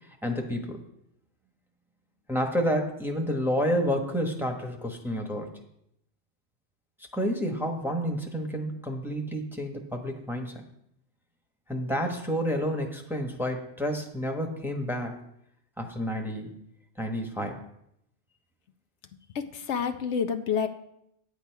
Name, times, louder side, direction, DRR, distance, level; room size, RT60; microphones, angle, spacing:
voice 1, 0.2-0.8 2.3-5.5 7.1-10.6 11.7-15.2 15.8-16.5 17.0-17.6, equal, ahead, 2 dB, 1.1 m, -29 dB
voice 2, 19.3-20.7, left 7 dB, 75° left, 8 dB, 1.0 m, -28 dB
9.6 x 8.2 x 4.6 m, 0.76 s
omnidirectional pair, 1.2 m